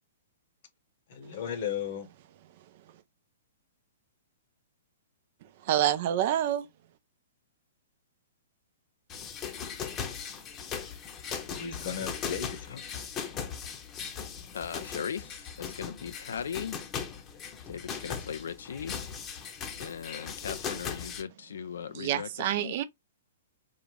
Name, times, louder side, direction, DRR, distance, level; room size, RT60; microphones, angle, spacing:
voice 1, 1.1-2.1 11.4-12.8, left 8 dB, 50° left, 1.0 m, -35 dB
voice 2, 5.6-6.7 21.9-22.8, right 11 dB, 50° right, 0.5 m, -27 dB
sound 1, 9.1-21.2, left 7 dB, 25° left, 0.8 m, -38 dB
voice 3, 14.5-16.8 17.7-19.0 19.8-22.7, left 7 dB, 65° left, 0.3 m, -38 dB
3.9 x 2.4 x 3.2 m
figure-of-eight pair, 110°, 0 cm